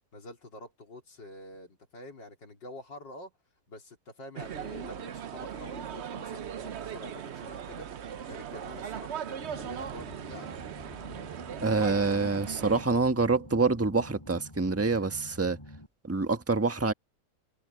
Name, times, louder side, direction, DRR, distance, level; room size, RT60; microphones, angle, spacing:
voice 1, 0.1-3.3 3.7-10.5, left 1 dB, 90° left, 4.4 m, -47 dB
sound 1, 4.4-12.8, right 8 dB, 55° right, 0.8 m, -39 dB
sound 2, 9.4-15.9, left 1 dB, 15° left, 4.9 m, -48 dB
voice 2, 11.6-15.6 16.0-16.9, right 3 dB, 10° right, 1.2 m, -26 dB
omnidirectional pair, 1.9 m